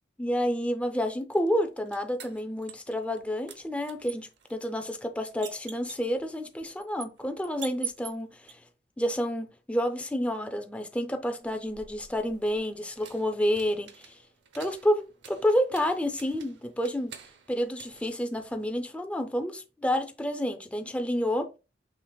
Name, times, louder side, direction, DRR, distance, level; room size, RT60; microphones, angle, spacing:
voice 1, 0.2-8.6 9.0-14.2 14.5-17.1 17.5-21.5, equal, 5° left, 0.4 m, -29 dB
sound 1, 1.3-3.2 3.5-8.5 11.3-18.8, right 8 dB, 90° right, 0.7 m, -46 dB
5.8 x 3.3 x 2.2 m
head